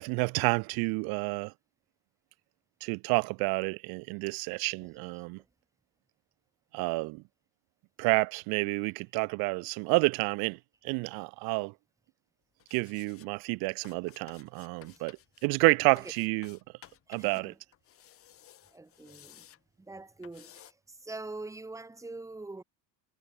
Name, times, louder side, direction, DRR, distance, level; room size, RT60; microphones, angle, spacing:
voice 1, 0.0-1.5 2.8-5.4 6.7-7.2 8.0-10.6 10.8-11.7 12.7-15.2 15.4-16.6 17.1-17.5, right 29 dB, 65° right, 1.5 m, -29 dB
sound 1, 12.6-13.3 13.8-15.5 16.0-17.4 17.7-19.6 20.2-20.7, left 11 dB, 35° left, 5.6 m, -55 dB
voice 2, 15.6-16.1 17.1-17.6 18.7-19.5 19.8-22.6, right 2 dB, 10° right, 7.0 m, -44 dB
cardioid pair, 170°, 39 cm